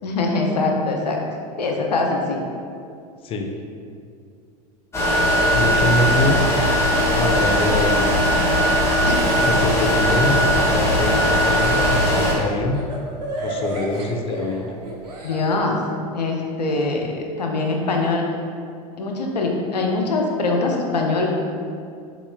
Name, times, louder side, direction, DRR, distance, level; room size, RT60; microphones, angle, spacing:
voice 1, 0.0-1.2 1.6-2.4 9.0-9.2 15.2-15.8 16.1-18.3 19.0-21.3, left 3 dB, 90° left, 1 dB, 0.5 m, -23 dB
voice 2, 3.2-3.6 5.5-6.5 7.2-8.3 9.4-12.8 13.4-14.8, left 2 dB, 30° left, 4 dB, 0.4 m, -24 dB
sound 1, 4.9-12.3, equal, 15° left, 0.9 m, -19 dB
Laughter, 9.1-15.4, right 1 dB, 85° right, 0.6 m, -32 dB
4.2 x 3.0 x 2.2 m, 2.3 s
hypercardioid pair, 90°, 20 cm